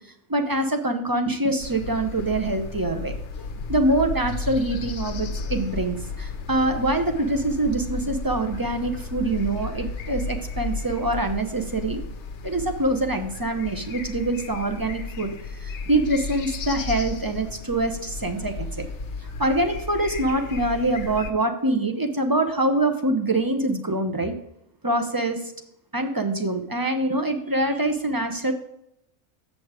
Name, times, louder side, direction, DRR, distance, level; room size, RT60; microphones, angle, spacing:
voice 1, 0.3-3.1 3.7-12.0 12.4-15.3 15.6-18.9 19.4-24.3 24.8-25.4 25.9-28.5, right 2 dB, 25° right, 6 dB, 0.5 m, -24 dB
sound 1, 1.6-21.3, left 4 dB, 65° left, 1.0 m, -34 dB
7.4 x 6.5 x 4.9 m, 0.77 s
omnidirectional pair, 1.4 m